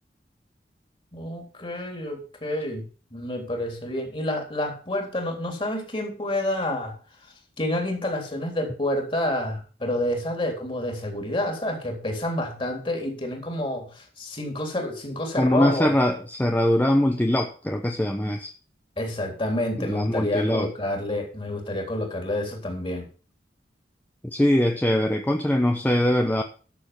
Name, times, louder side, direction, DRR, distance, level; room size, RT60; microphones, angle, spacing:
voice 1, 1.1-2.8 3.1-6.9 7.6-15.9 19.0-23.1, left 1 dB, 30° left, 2 dB, 3.7 m, -29 dB
voice 2, 15.4-18.5 19.8-20.7 24.2-26.4, left 1 dB, 10° left, 4 dB, 0.9 m, -22 dB
12.0 x 6.9 x 5.9 m, 0.38 s
head